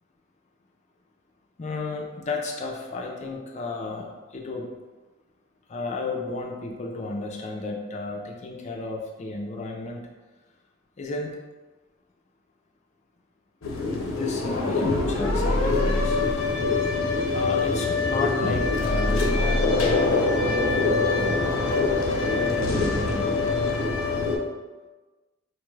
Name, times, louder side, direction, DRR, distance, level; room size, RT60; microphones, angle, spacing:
voice 1, 1.6-4.7 5.7-10.0 11.0-11.4 14.0-16.2 17.3-21.5 22.2-23.3, left 3 dB, 35° left, 0 dB, 0.4 m, -33 dB
sound 1, 13.6-24.4, left 3 dB, 80° left, 0.6 m, -24 dB
4.5 x 2.3 x 3.1 m, 1.2 s
head